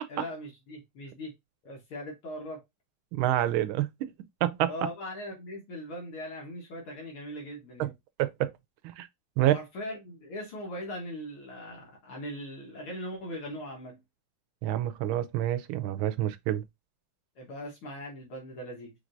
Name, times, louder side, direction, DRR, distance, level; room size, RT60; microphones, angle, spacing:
voice 1, 0.1-1.3 1.6-2.6 4.7-7.9 9.4-14.0 17.4-18.9, equal, 75° left, 2.1 m, -40 dB
voice 2, 3.1-4.1 4.4-4.7 7.8-7.9 8.2-8.5 8.8-9.1 9.4-9.5 14.6-16.6, right 13 dB, 75° right, 1.3 m, -27 dB
5.1 x 3.2 x 2.6 m
omnidirectional pair, 2.4 m